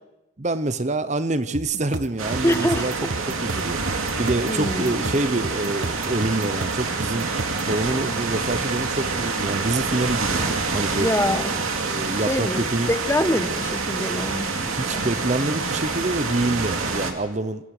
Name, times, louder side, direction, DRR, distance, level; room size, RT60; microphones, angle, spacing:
voice 1, 0.4-2.9 3.3-7.3 7.7-11.1 11.8-12.9 13.3-13.4 14.5-17.7, right 2 dB, 35° right, 12 dB, 0.8 m, -26 dB
sound 1, 1.5-7.7, right 2 dB, 65° right, 1.4 m, -33 dB
sound 2, 2.2-17.1, right 4 dB, 85° right, 2.6 m, -27 dB
voice 2, 2.4-2.8 4.5-5.1 11.0-11.6 12.3-15.1, left 1 dB, 15° left, 10 dB, 1.1 m, -25 dB
26.5 x 16.0 x 6.6 m, 0.99 s
head